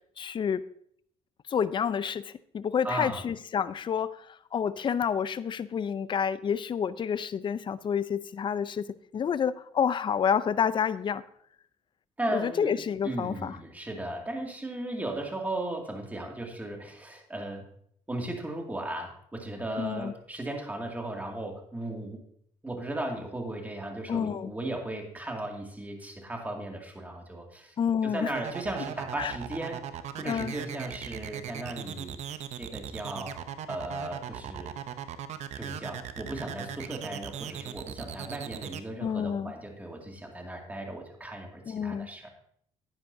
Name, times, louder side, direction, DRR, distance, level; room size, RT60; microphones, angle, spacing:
voice 1, 0.2-0.7 1.5-4.2 4.5-8.8 9.1-11.2 12.3-13.6 19.8-20.1 24.1-24.5 27.8-28.3 29.2-29.3 30.2-30.5 39.0-39.5 41.7-42.1, left 7 dB, 40° left, 16 dB, 0.5 m, -29 dB
voice 2, 2.8-3.2 12.2-17.7 18.1-22.2 22.6-27.8 28.0-33.4 33.7-34.7 35.6-42.3, right 1 dB, 15° right, 1 dB, 2.3 m, -36 dB
sound 1, 28.3-38.8, right 10 dB, 65° right, 0.7 m, -38 dB
10.5 x 10.0 x 2.7 m, 0.65 s
supercardioid pair, 80°, 12 cm